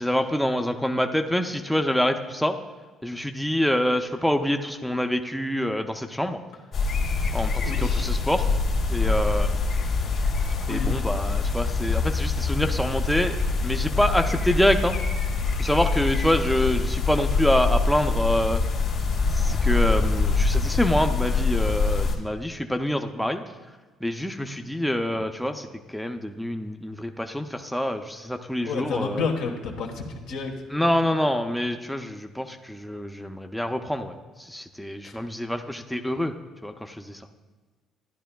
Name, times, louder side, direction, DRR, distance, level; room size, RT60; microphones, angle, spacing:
voice 1, 0.0-2.6 3.0-6.4 7.3-8.5 8.9-9.5 10.7-13.4 13.6-15.0 15.6-18.6 19.4-23.4 24.0-29.2 30.7-36.3 36.6-37.2, equal, ahead, 6 dB, 0.5 m, -26 dB
sound 1, 6.7-22.1, left 4 dB, 60° left, 1.8 m, -24 dB
voice 2, 7.4-8.2 10.7-10.9 28.6-30.5 35.0-35.1, left 4 dB, 80° left, 1 dB, 1.3 m, -30 dB
12.5 x 9.9 x 2.3 m, 1.4 s
supercardioid pair, 80°, 0 cm